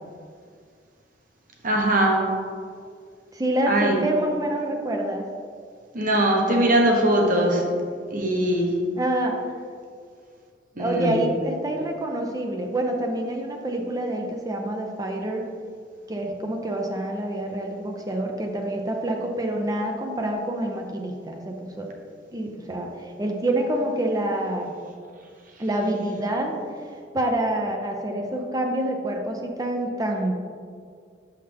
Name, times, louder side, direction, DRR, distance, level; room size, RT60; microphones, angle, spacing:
voice 1, 1.6-2.2 3.7-4.0 5.9-7.6 8.1-8.7 10.8-11.2, right 1 dB, 45° right, 0 dB, 1.1 m, -21 dB
voice 2, 3.3-5.2 9.0-9.4 10.8-15.5 16.1-21.9 22.3-24.7 25.6-26.6 27.1-30.3, right 1 dB, 20° right, 2 dB, 0.5 m, -27 dB
6.7 x 5.7 x 3.4 m, 2.2 s
head